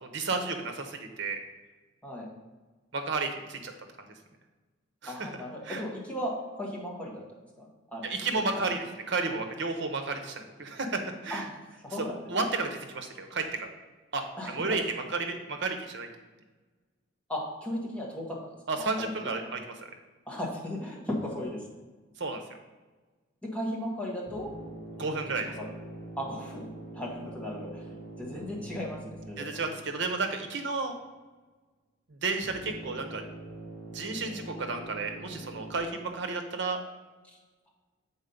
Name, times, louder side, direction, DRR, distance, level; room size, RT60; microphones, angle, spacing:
voice 1, 0.0-1.4 2.9-3.7 5.0-5.3 5.6-5.8 8.0-11.5 12.3-13.7 14.1-16.1 18.7-19.6 22.2-22.4 25.0-25.5 29.4-31.0 32.1-33.2 33.9-36.8, right 3 dB, 60° right, 5 dB, 0.9 m, -32 dB
voice 2, 5.1-7.2 7.6-8.0 8.3-8.5 11.3-11.4 11.8-12.2 14.4-14.9 17.3-19.1 20.3-21.6 23.4-24.5 25.0-25.2 25.6-25.7 26.2-26.7 26.9-27.9 28.2-29.4, left 1 dB, 5° left, -4 dB, 1.5 m, -36 dB
sound 1, 24.3-30.6 32.4-35.8, right 2 dB, 40° right, 1.4 m, -44 dB
7.2 x 4.2 x 5.3 m, 1.3 s
head